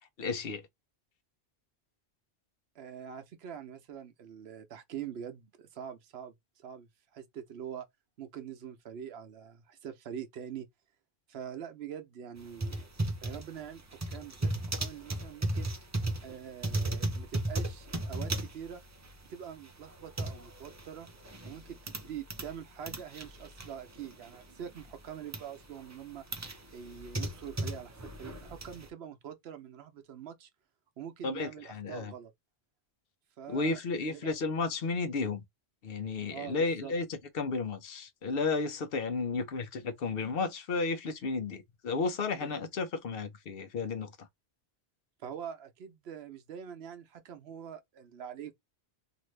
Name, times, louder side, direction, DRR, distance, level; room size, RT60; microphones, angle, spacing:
voice 1, 0.2-0.6 31.2-32.1 33.5-35.4 35.8-37.0 37.3-44.1, left 4 dB, 65° left, 0.8 m, -33 dB
voice 2, 2.7-7.9 8.2-10.7 11.3-12.8 13.2-15.7 16.2-18.8 19.3-21.1 21.5-26.2 26.7-30.5 31.0-32.3 33.4-34.4 36.3-36.9 42.4-42.6 45.2-48.5, right 9 dB, 75° right, 0.9 m, -44 dB
sound 1, 12.4-22.5 22.8-24.5 24.8-25.4 25.9-28.9, right 1 dB, 30° right, 0.3 m, -36 dB
2.7 x 2.6 x 3.1 m
omnidirectional pair, 1.1 m